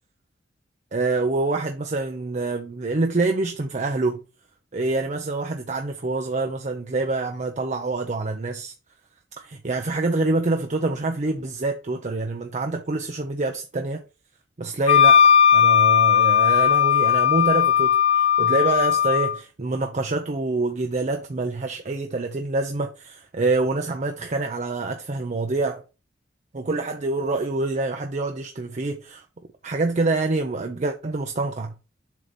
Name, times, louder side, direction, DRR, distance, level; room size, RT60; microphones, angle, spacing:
voice 1, 0.9-4.2 4.7-8.7 9.4-14.0 14.6-15.2 15.5-25.8 26.5-29.2 29.6-31.7, right 3 dB, 40° right, 0.6 m, -26 dB
Wind instrument woodwind instrument, 14.9-19.4, left 8 dB, 30° left, 0.4 m, -17 dB
7.4 x 2.8 x 5.1 m
head